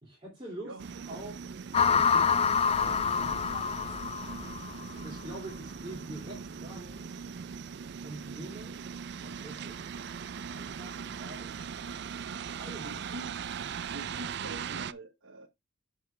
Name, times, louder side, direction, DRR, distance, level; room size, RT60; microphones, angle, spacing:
voice 1, 0.0-0.7 1.1-1.4 1.9-2.4 2.7-3.8 4.9-7.1 8.0-8.8 9.1-9.9 10.5-11.5 12.6-13.0, right 1 dB, 20° right, 2.9 m, -45 dB
voice 2, 0.6-1.2 12.8-13.4 13.9-15.5, right 1 dB, 70° right, 1.5 m, -45 dB
sound 1, 0.8-14.9, right 6 dB, 50° right, 0.4 m, -40 dB
sound 2, 1.7-5.0, left 6 dB, 25° left, 0.3 m, -27 dB
7.2 x 6.6 x 3.3 m
head